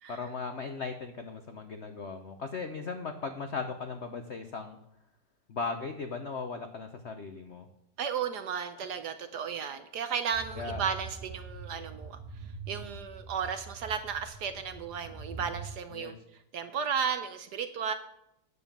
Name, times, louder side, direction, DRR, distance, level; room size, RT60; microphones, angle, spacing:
voice 1, 0.1-4.8 5.5-7.7 10.6-10.8 12.8-13.0 15.9-16.2, left 4 dB, 85° left, 7 dB, 0.6 m, -37 dB
voice 2, 8.0-12.2 12.7-16.2 16.5-17.9, right 7 dB, 65° right, 9 dB, 1.1 m, -34 dB
sound 1, 10.3-15.7, right 4 dB, 15° right, 2.9 m, -44 dB
10.0 x 7.2 x 7.1 m, 0.80 s
omnidirectional pair, 2.3 m